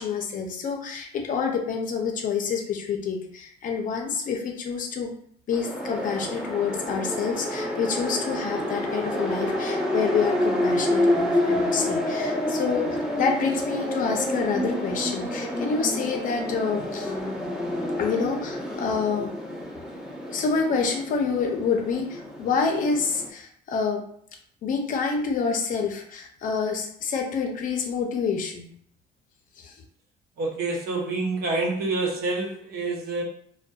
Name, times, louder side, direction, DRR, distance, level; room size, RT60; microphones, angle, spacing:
voice 1, 0.0-5.1 5.5-17.1 18.0-19.3 20.3-24.1 24.6-28.7 29.6-29.7, left 5 dB, 50° left, 2 dB, 0.5 m, -27 dB
sound 1, 5.5-23.3, left 1 dB, 5° right, 0.6 m, -28 dB
voice 2, 30.4-33.2, right 3 dB, 65° right, -1 dB, 0.8 m, -27 dB
2.5 x 2.2 x 2.3 m, 0.64 s
cardioid pair, 110°, 17 cm